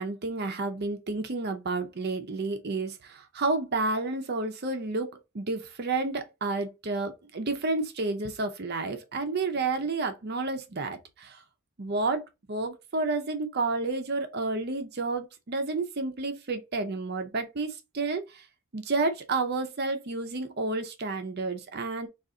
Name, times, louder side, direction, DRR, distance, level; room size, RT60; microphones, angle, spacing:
voice 1, 0.0-11.4 11.8-12.2 12.5-18.4 18.7-22.1, right 3 dB, 50° right, 0.6 m, -30 dB
3.9 x 2.4 x 3.7 m
head